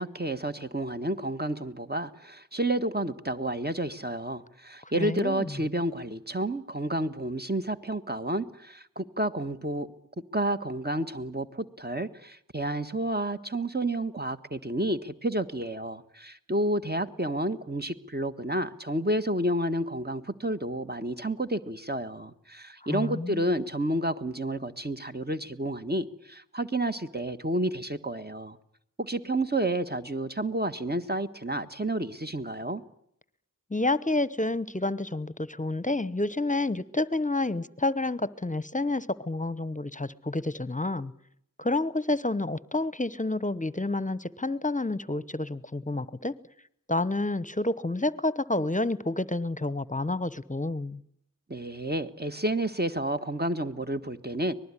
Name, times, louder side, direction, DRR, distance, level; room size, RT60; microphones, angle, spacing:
voice 1, 0.0-9.9 10.3-28.6 29.0-32.8 51.5-54.5, right 1 dB, 30° right, 8 dB, 1.6 m, -30 dB
voice 2, 4.8-5.5 22.9-23.5 33.7-41.1 41.6-46.3 46.9-51.0, left 2 dB, 25° left, 18 dB, 1.0 m, -29 dB
25.0 x 20.0 x 9.9 m, 0.72 s
wide cardioid pair, 55°, 33 cm